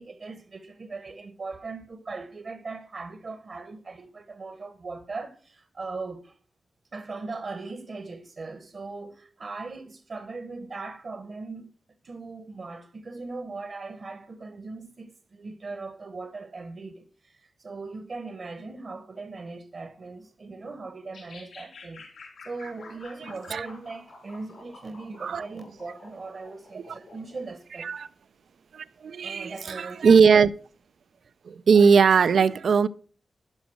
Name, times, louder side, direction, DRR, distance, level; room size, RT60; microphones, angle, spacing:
voice 1, 0.0-6.3 6.9-11.7 12.0-22.0 22.4-27.9 29.2-30.2, right 3 dB, 55° right, 1.1 m, -39 dB
sound 1, 21.1-27.4, left 3 dB, 85° left, 4.8 m, -48 dB
voice 2, 23.2-23.7 25.2-25.4 26.7-26.8 27.8-28.1 28.7-30.5 31.4-32.9, right 6 dB, 80° right, 0.5 m, -20 dB
11.5 x 5.2 x 6.2 m
wide cardioid pair, 105°, 0 cm